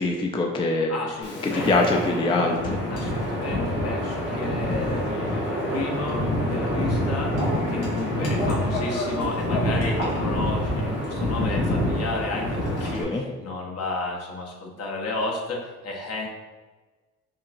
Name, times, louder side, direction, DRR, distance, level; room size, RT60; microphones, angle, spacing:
voice 1, 0.0-0.9 1.4-2.8 12.9-13.2, left 3 dB, 15° left, 1 dB, 0.4 m, -23 dB
voice 2, 0.9-1.7 2.9-7.3 7.7-16.3, left 3 dB, 55° left, -1 dB, 0.9 m, -32 dB
Wind, 1.2-13.0, left 1 dB, 85° left, 1.4 m, -26 dB
5.6 x 2.4 x 2.5 m, 1.3 s
cardioid pair, 90°, 30 cm